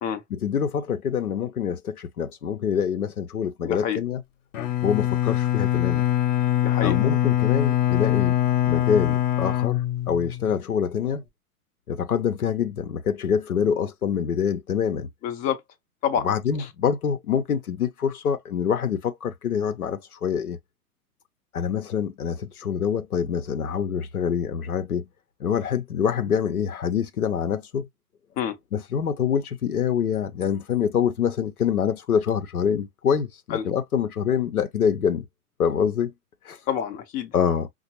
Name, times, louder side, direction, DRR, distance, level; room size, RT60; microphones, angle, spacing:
voice 1, 0.3-4.2 4.8-6.1 6.8-11.2 11.9-15.1 16.2-20.6 21.5-25.1 25.4-27.9 28.7-35.3 35.6-36.1 36.4-36.6 37.3-37.7, left 7 dB, 70° left, 0.7 m, -25 dB
voice 2, 3.6-4.0 6.6-7.0 15.2-15.6 16.0-16.3 28.4-28.6 33.5-33.6 36.7-37.3, left 9 dB, 20° left, 0.5 m, -27 dB
Bowed string instrument, 4.5-10.6, left 12 dB, 55° left, 0.9 m, -23 dB
5.6 x 2.0 x 2.9 m
figure-of-eight pair, 100°, 45 cm